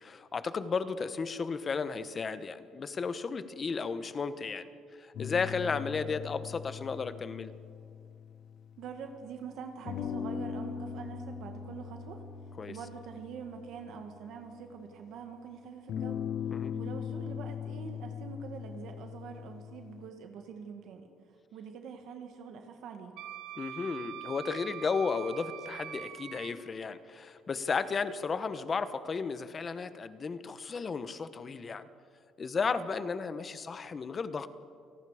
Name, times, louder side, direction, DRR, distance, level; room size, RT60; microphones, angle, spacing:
voice 1, 0.0-7.5 12.6-12.8 16.5-16.7 23.6-31.9 32.4-34.5, left 5 dB, 25° left, 12 dB, 1.0 m, -34 dB
sound 1, 5.1-9.1 9.8-14.9 15.9-20.1, left 8 dB, 55° left, 0.8 m, -40 dB
voice 2, 8.8-12.2 12.7-16.2 16.7-21.1 21.5-23.1, right 6 dB, 65° right, 4 dB, 1.8 m, -45 dB
Wind instrument woodwind instrument, 23.2-26.5, right 11 dB, 85° right, 1.4 m, -43 dB
28.5 x 18.0 x 5.0 m, 2.2 s
cardioid pair, 150°, 0 cm